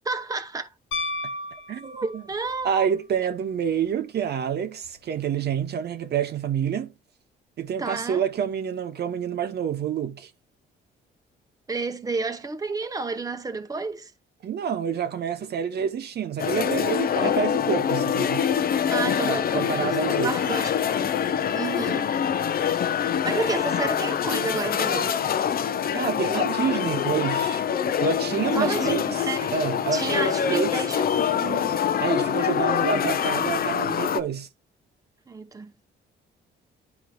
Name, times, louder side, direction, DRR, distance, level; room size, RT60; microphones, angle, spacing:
voice 1, 0.0-0.7 1.8-2.9 7.8-8.2 11.7-14.1 18.9-21.1 21.5-22.1 22.7-22.9 23.2-25.1 28.5-29.5 29.9-31.8 35.3-35.7, right 3 dB, 20° right, 0.8 m, -31 dB
Piano, 0.9-2.5 4.8-4.9, left 2 dB, 75° left, 0.8 m, -32 dB
voice 2, 1.7-2.2 2.6-6.9 7.6-10.3 14.4-18.5 19.0-20.7 25.9-27.6 28.0-29.2 29.5-30.7 32.0-34.5, right 7 dB, 55° right, 0.7 m, -28 dB
sound 1, 16.4-34.2, left 8 dB, 50° left, 0.6 m, -25 dB
10.5 x 4.5 x 2.3 m
cardioid pair, 90°, 20 cm